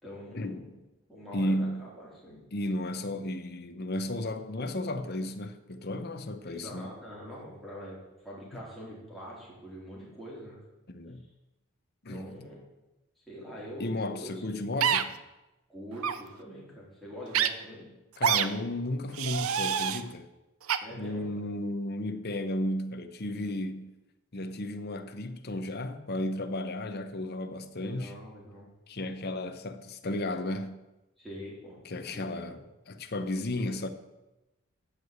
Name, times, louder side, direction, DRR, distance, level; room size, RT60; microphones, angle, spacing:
voice 1, 0.0-0.8 1.1-2.4 6.4-10.6 12.1-12.6 13.3-14.7 15.7-17.9 20.8-21.3 27.8-28.7 31.2-31.8 32.1-32.6, equal, ahead, 3.8 m, -44 dB
voice 2, 1.3-1.8 2.5-6.9 10.9-11.3 12.0-12.3 13.8-15.2 18.2-20.3 20.9-23.9 24.3-28.2 28.9-30.8 31.8-33.9, left 1 dB, 45° left, 0.8 m, -34 dB
sound 1, 14.8-15.0 16.0-16.2 17.3-17.5 18.2-18.5 19.1-20.0 20.7-20.8, right 8 dB, 70° right, 0.6 m, -26 dB
13.0 x 4.9 x 8.0 m
head